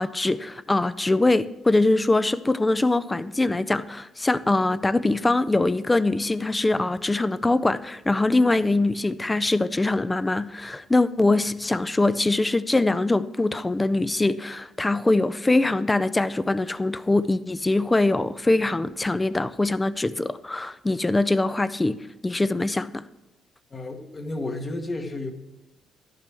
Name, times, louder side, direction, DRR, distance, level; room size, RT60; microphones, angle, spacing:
voice 1, 0.0-22.0 22.2-23.0, left 2 dB, 15° left, 0.4 m, -23 dB
voice 2, 23.7-25.3, left 2 dB, 35° left, 1.3 m, -32 dB
12.0 x 11.5 x 3.4 m
cardioid pair, 90°, 0 cm